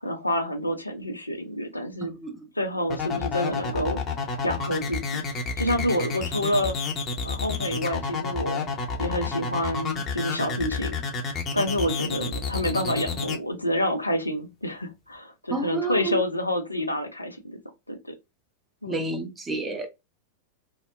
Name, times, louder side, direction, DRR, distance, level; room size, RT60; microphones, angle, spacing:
voice 1, 0.0-2.1 2.6-4.0 4.4-5.0 5.6-6.8 7.2-8.6 9.0-11.0 11.5-17.6 17.9-18.1 18.8-19.0, left 1 dB, 85° left, 0.5 m, -28 dB
voice 2, 2.0-2.4 15.5-16.2 18.9-19.9, right 2 dB, 15° right, 0.7 m, -30 dB
sound 1, 2.9-13.4, left 5 dB, 30° left, 0.7 m, -29 dB
2.7 x 2.1 x 2.4 m
figure-of-eight pair, 90°, 0 cm